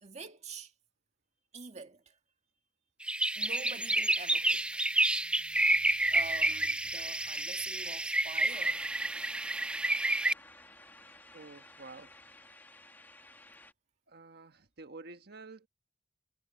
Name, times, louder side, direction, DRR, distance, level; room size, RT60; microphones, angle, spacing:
voice 1, 0.0-0.7 1.5-2.2 3.3-8.9, right 4 dB, 40° right, 1.8 m, -47 dB
sound 1, 3.0-10.3, right 1 dB, 5° right, 0.4 m, -29 dB
sound 2, 8.5-13.7, left 2 dB, 10° left, 1.9 m, -54 dB
voice 2, 11.3-12.2 14.1-15.7, right 3 dB, 60° right, 1.5 m, -49 dB
head